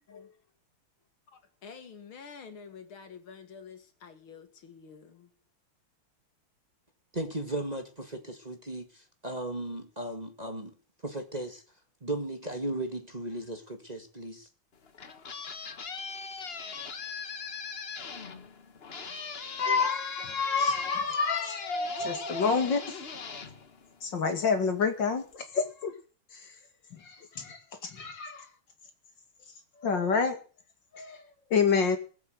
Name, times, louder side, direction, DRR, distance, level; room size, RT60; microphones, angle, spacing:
voice 1, 1.6-5.3, left 6 dB, 75° left, 2.6 m, -48 dB
voice 2, 7.1-10.7 11.0-11.6 12.0-14.5, right 1 dB, 20° right, 1.8 m, -36 dB
sound 1, 14.7-24.4, left 5 dB, 35° left, 1.2 m, -40 dB
voice 3, 19.6-22.8 24.0-25.9 27.4-28.4 29.8-30.4 30.9-31.2 31.5-32.0, left 5 dB, 60° left, 2.9 m, -28 dB
19.5 x 7.9 x 7.9 m
omnidirectional pair, 2.3 m